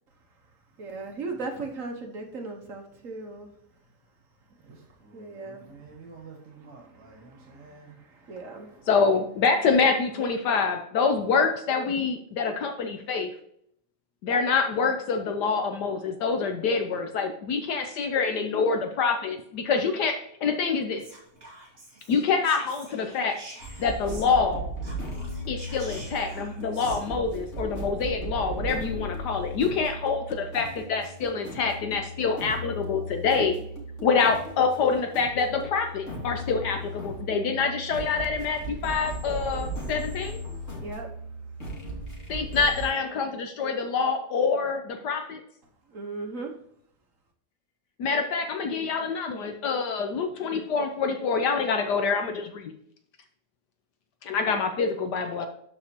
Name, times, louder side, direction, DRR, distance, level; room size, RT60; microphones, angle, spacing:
voice 1, 0.8-3.5 5.1-5.6 8.3-8.8 40.7-41.1 45.9-46.5, right 3 dB, 50° right, 2 dB, 1.6 m, -36 dB
voice 2, 4.6-8.0, right 4 dB, 75° right, -1 dB, 2.2 m, -50 dB
voice 3, 8.9-13.3 14.2-21.0 22.1-23.4 23.8-24.7 25.5-33.6 34.0-40.4 42.3-45.4 48.0-52.7 54.2-55.5, left 5 dB, 70° left, 6 dB, 1.3 m, -26 dB
Whispering, 21.0-24.5 24.8-27.0, right 1 dB, 35° right, 3.1 m, -47 dB
sound 1, 23.6-42.9, equal, 40° left, 2.6 m, -37 dB
12.0 x 5.1 x 2.9 m, 0.69 s
omnidirectional pair, 1.9 m